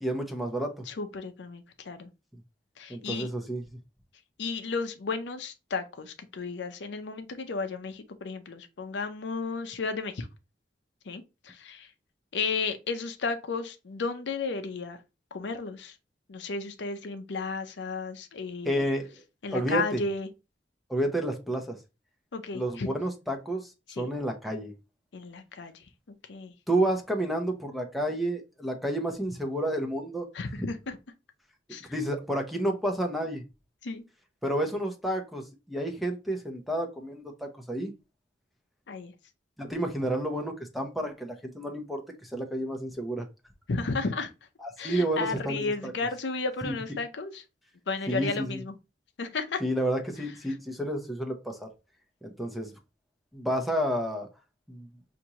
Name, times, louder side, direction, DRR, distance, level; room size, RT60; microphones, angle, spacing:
voice 1, 0.0-0.9 2.3-2.4 2.9-3.6 18.6-19.2 19.5-20.0 20.9-21.8 22.5-23.7 24.0-24.7 26.7-30.3 30.6-30.7 31.9-33.4 34.4-37.9 39.6-43.3 44.6-45.9 46.6-46.8 48.1-48.6 49.6-51.7 52.2-52.7 53.3-54.3 54.7-54.9, right 1 dB, ahead, 0.7 m, -30 dB
voice 2, 0.9-2.1 2.8-3.3 4.4-10.3 11.1-11.9 12.3-15.0 15.3-15.9 16.3-18.9 19.4-20.3 22.3-22.9 24.0-24.1 25.1-25.8 26.3-26.5 30.3-31.0 31.7-31.9 33.8-34.0 38.9-39.1 43.7-44.3 44.8-47.3 47.9-48.7 49.2-49.6, left 4 dB, 70° left, 0.6 m, -33 dB
5.8 x 2.6 x 2.8 m
head